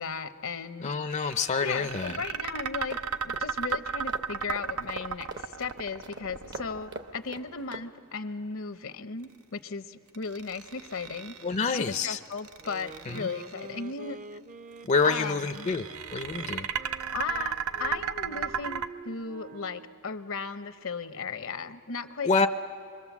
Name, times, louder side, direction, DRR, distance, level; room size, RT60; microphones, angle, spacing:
voice 1, 0.0-0.9 1.6-3.0 3.2-11.4 11.6-14.2 15.0-15.7 17.1-22.5, left 5 dB, 70° left, 10 dB, 0.8 m, -36 dB
voice 2, 0.8-2.2 11.4-12.2 13.1-13.3 14.9-16.7 22.2-22.5, left 4 dB, 35° left, 6 dB, 0.5 m, -27 dB
sound 1, 1.1-7.3 10.1-11.7 12.3-13.6 14.9-18.9, right 6 dB, 90° right, 0.7 m, -34 dB
sound 2, 2.9-7.9, right 3 dB, 55° right, 1.0 m, -44 dB
sound 3, 12.6-20.1, right 3 dB, 40° right, 0.6 m, -47 dB
26.0 x 23.5 x 7.2 m, 2.5 s
head